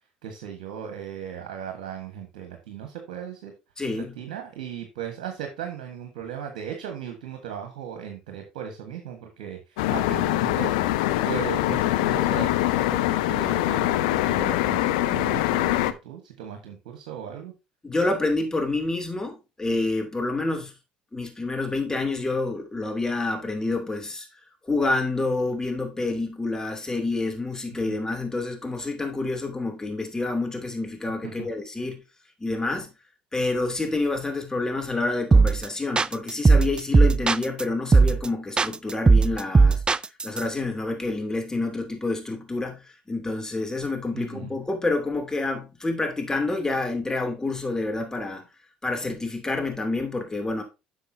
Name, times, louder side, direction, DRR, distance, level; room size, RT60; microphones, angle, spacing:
voice 1, 0.2-3.5 3.9-17.5 31.2-31.5 44.1-44.5, right 8 dB, 75° right, 1.4 m, -37 dB
voice 2, 3.8-4.1 17.8-20.7 21.1-24.3 24.6-32.0 32.4-32.9 33.3-39.8 40.2-48.5 48.8-50.6, left 2 dB, 15° left, 2.9 m, -28 dB
sound 1, 9.8-15.9, left 15 dB, 75° left, 0.6 m, -23 dB
sound 2, 35.3-35.7 36.0-37.6 37.9-38.3 38.6-40.4, right 4 dB, 20° right, 0.4 m, -17 dB
10.0 x 6.5 x 2.7 m
hypercardioid pair, 60°, 4 cm